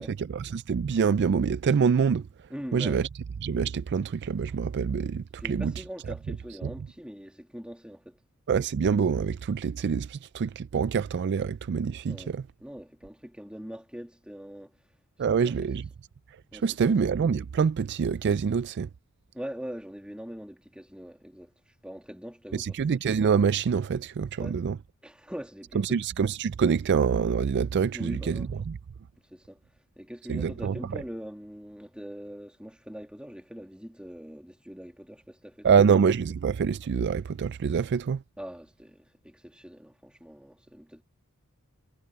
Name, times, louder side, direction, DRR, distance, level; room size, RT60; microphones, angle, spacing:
voice 1, 0.0-2.3 2.7-3.0 3.4-5.7 6.6-6.7 8.5-12.4 15.2-15.8 16.5-18.9 22.5-24.8 25.8-28.8 30.3-30.7 35.6-38.2, right 6 dB, 55° right, 0.3 m, -26 dB
voice 2, 2.5-3.0 5.4-8.2 12.1-14.8 15.3-15.7 16.5-16.9 19.3-22.8 24.4-24.6 25.0-26.0 27.9-28.5 29.2-29.6 30.0-35.9 38.4-41.0, equal, 5° right, 2.5 m, -42 dB
head